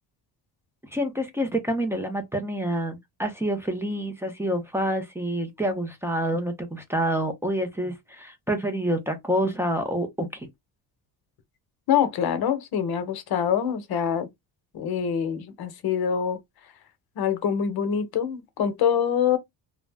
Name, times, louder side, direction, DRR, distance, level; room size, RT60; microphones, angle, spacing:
voice 1, 0.9-10.5, right 1 dB, 5° right, 0.4 m, -27 dB
voice 2, 11.9-14.3 14.7-16.4 17.2-19.4, left 8 dB, 55° left, 0.8 m, -25 dB
2.4 x 2.0 x 3.3 m
cardioid pair, 125°, 45 cm